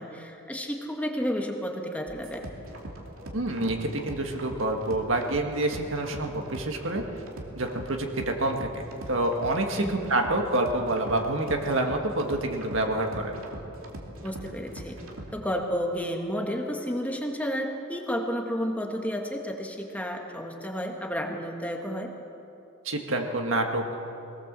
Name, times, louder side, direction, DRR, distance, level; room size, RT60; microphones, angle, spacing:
voice 1, 0.0-2.5 9.8-10.0 14.2-15.0 15.3-22.1, equal, 5° left, 2 dB, 1.8 m, -31 dB
sound 1, 2.1-15.3, right 1 dB, 90° right, 2.7 m, -42 dB
voice 2, 3.3-7.0 7.6-13.4 22.8-24.0, right 2 dB, 65° right, 3 dB, 2.0 m, -27 dB
21.5 x 18.5 x 7.6 m, 2.9 s
head